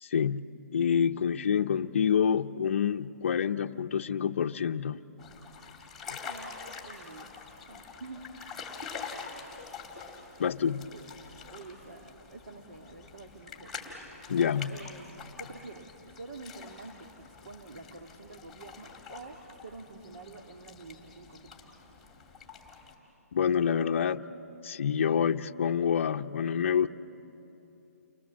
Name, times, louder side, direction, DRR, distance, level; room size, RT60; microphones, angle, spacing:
voice 1, 0.0-5.0 6.1-6.2 10.4-10.9 14.3-14.8 23.3-24.2 24.6-26.9, left 7 dB, 50° left, 6 dB, 0.6 m, -27 dB
sound 1, 5.2-22.9, left 5 dB, ahead, 2.2 m, -46 dB
voice 2, 6.2-6.6 6.8-7.3 7.7-8.2 10.9-11.1 11.5-13.7 14.0-14.3 14.7-15.1 15.4-21.7, right 3 dB, 70° right, 1 dB, 2.1 m, -47 dB
30.0 x 23.5 x 7.3 m, 2.9 s
hypercardioid pair, 170°, 8 cm